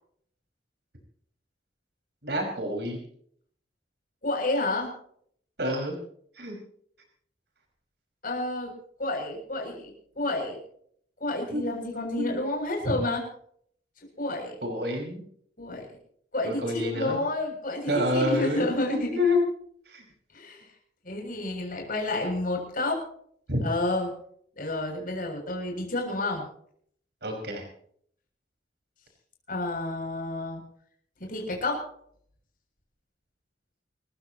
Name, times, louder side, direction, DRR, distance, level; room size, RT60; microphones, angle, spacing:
voice 1, 2.2-3.0 5.6-6.0 6.4-6.5 11.5-11.7 12.2-12.3 12.8-12.9 14.6-15.2 16.4-17.2 17.9-19.4 19.9-20.0 23.5-23.7 27.2-27.6, left 1 dB, 65° right, 2 dB, 5.3 m, -28 dB
voice 2, 4.2-4.9 8.2-8.7 9.0-10.6 11.2-13.2 14.0-14.6 15.6-15.9 16.3-19.1 20.3-20.7 21.0-23.0 23.6-24.1 24.6-26.4 29.5-30.6 31.2-31.8, left 2 dB, 50° left, 1 dB, 7.3 m, -30 dB
29.0 x 15.0 x 3.0 m, 0.63 s
head